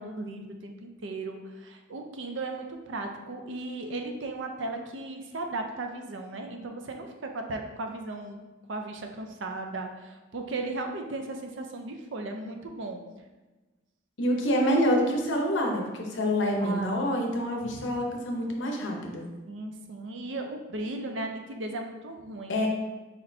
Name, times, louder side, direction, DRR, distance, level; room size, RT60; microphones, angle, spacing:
voice 1, 0.0-8.4 8.7-13.0 16.6-17.0 17.6-17.9 19.5-22.6, right 2 dB, 75° right, 4 dB, 0.5 m, -36 dB
voice 2, 14.2-19.2 22.5-22.7, equal, 70° left, 1 dB, 0.8 m, -27 dB
4.3 x 4.2 x 2.7 m, 1.2 s
head